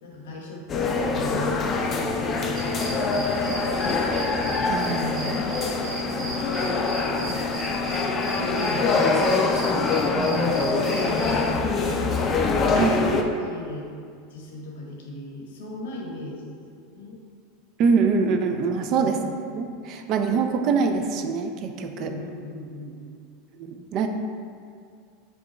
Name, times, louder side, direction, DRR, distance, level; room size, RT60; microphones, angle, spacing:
voice 1, 0.0-3.6 5.2-5.6 6.0-9.0 10.2-13.1 13.4-13.9 14.3-17.2 18.6-19.2 19.8-20.0 21.9-23.0, left 1 dB, 90° left, 0 dB, 0.8 m, -38 dB
sound 1, 0.7-13.2, left 3 dB, 25° left, 0.4 m, -24 dB
sound 2, 2.5-11.4, equal, 20° right, 1.2 m, -37 dB
voice 2, 4.7-5.3 10.2-10.6 12.7-13.0 17.8-19.2 19.5-22.1 23.6-24.1, right 5 dB, 45° right, 6 dB, 0.3 m, -24 dB
5.1 x 2.3 x 4.1 m, 2.2 s
supercardioid pair, 140°, 0 cm